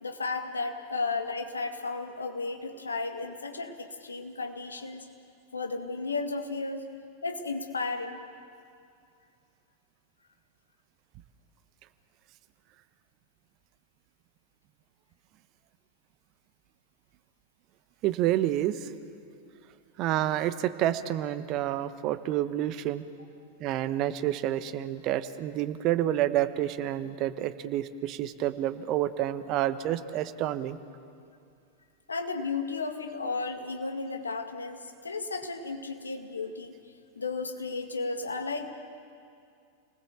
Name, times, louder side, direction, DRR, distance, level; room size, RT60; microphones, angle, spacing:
voice 1, 0.0-5.1 5.5-6.9 7.2-8.2 32.1-36.7 37.2-38.7, left 3 dB, 75° left, 5 dB, 2.0 m, -34 dB
voice 2, 18.0-18.9 20.0-23.0 23.6-30.8, right 13 dB, 40° right, 12 dB, 1.1 m, -29 dB
29.5 x 20.0 x 7.3 m, 2.4 s
figure-of-eight pair, 90°, 0 cm